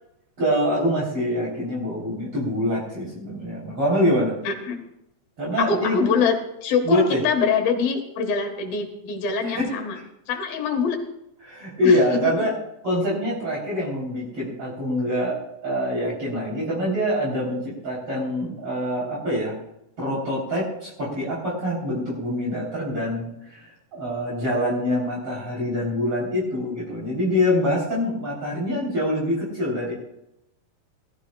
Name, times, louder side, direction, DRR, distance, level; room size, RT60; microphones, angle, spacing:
voice 1, 0.4-4.4 5.4-6.0 6.8-7.2 9.4-9.7 11.4-12.5 12.8-19.5 20.0-29.9, left 1 dB, 40° right, -6 dB, 4.3 m, -25 dB
voice 2, 4.4-4.8 5.6-6.3 6.6-10.0 10.3-11.0 11.8-12.0, left 5 dB, 85° left, 4 dB, 3.4 m, -24 dB
18.5 x 13.0 x 2.3 m, 0.83 s
omnidirectional pair, 4.0 m